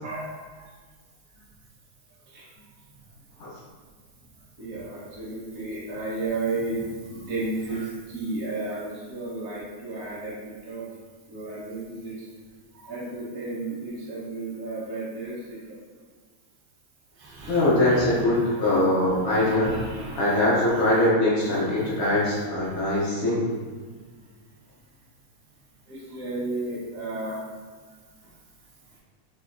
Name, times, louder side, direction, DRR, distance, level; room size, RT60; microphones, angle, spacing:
voice 1, 0.0-0.7 2.3-2.4 4.6-10.4 10.6-10.8 11.3-12.3 12.7-15.8 17.2-20.7 21.0-21.1 21.4-22.2 22.5-22.7 25.9-27.4, right 2 dB, 55° right, -7 dB, 0.9 m, -34 dB
voice 2, 17.5-19.7 20.1-23.5, left 1 dB, 70° left, -8 dB, 1.2 m, -22 dB
5.9 x 2.8 x 2.6 m, 1.5 s
omnidirectional pair, 3.4 m